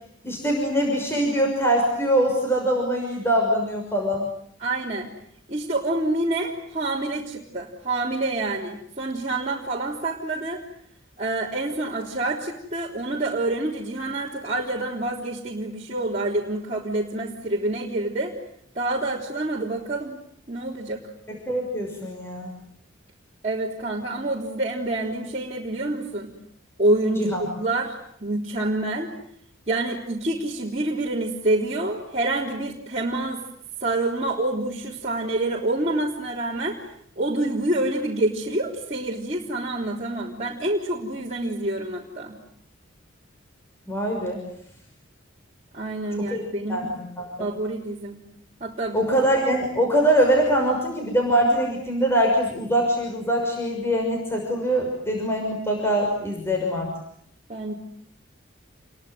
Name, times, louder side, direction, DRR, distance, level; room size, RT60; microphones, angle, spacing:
voice 1, 0.2-4.3 21.3-22.5 27.2-27.4 43.9-44.4 46.3-46.4 46.7-47.5 48.9-56.9, right 1 dB, 10° left, 1 dB, 6.0 m, -23 dB
voice 2, 4.6-5.1 5.5-10.6 11.2-18.3 18.8-20.2 20.5-21.0 23.4-26.3 26.8-29.1 29.7-33.4 33.8-36.8 37.2-42.4 45.7-46.9 47.4-48.2 48.6-49.1 57.5-57.7, right 2 dB, 35° right, -4 dB, 3.7 m, -27 dB
29.0 x 22.5 x 9.3 m, 0.70 s
head